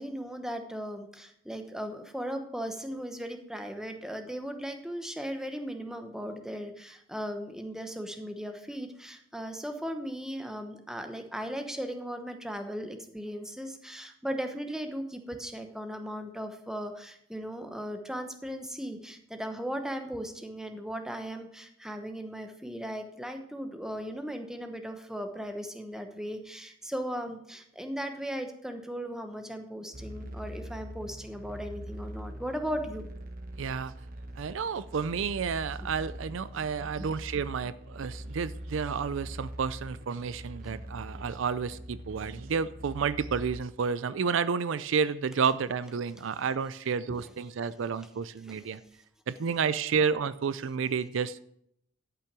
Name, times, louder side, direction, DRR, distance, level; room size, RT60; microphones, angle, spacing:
voice 1, 0.0-33.1 37.0-37.1 40.6-40.7 48.4-48.7, equal, 5° right, 6 dB, 1.0 m, -37 dB
sound 1, 29.9-43.6, right 1 dB, 45° right, 1.0 m, -43 dB
voice 2, 33.6-33.9 34.4-48.8 49.3-51.4, right 6 dB, 70° right, 16 dB, 0.4 m, -30 dB
12.0 x 5.8 x 6.0 m, 0.73 s
head